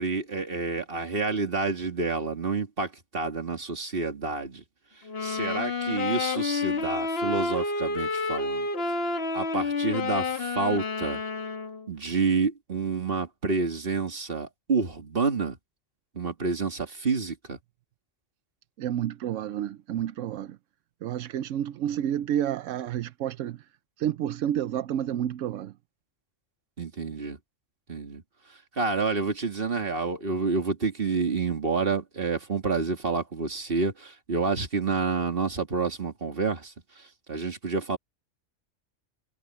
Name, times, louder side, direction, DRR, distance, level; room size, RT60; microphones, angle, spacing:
voice 1, 0.0-4.6 5.2-8.7 9.3-11.2 11.9-15.6 16.2-17.6 26.8-27.4 27.9-28.2 28.8-36.7 37.3-38.0, right 4 dB, 50° right, 2.4 m, -28 dB
sound 1, 5.0-11.9, left 3 dB, 55° left, 1.6 m, -29 dB
voice 2, 18.8-20.6 21.0-23.6 24.0-25.7, right 11 dB, 85° right, 1.0 m, -30 dB
omnidirectional pair, 1.3 m